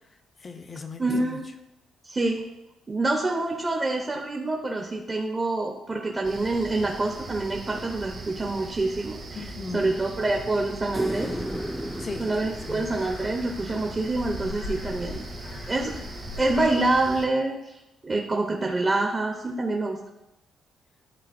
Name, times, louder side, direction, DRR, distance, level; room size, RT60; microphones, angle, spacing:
voice 1, 0.4-1.4 9.3-9.9 12.0-12.3 12.7-13.0, left 4 dB, 35° left, 7 dB, 0.7 m, -37 dB
voice 2, 1.0-1.4 2.0-2.4 2.9-9.2 9.7-11.3 12.2-15.3 15.7-16.0 16.4-17.8 18.0-20.0, right 2 dB, 25° right, 1 dB, 0.8 m, -26 dB
sound 1, 6.2-17.3, right 2 dB, 55° right, 1.4 m, -40 dB
sound 2, 10.9-16.7, left 3 dB, 65° left, 1.0 m, -41 dB
sound 3, 10.9-14.2 16.8-16.9, equal, ahead, 0.3 m, -35 dB
10.5 x 3.9 x 2.6 m, 0.94 s
cardioid pair, 90°, 0 cm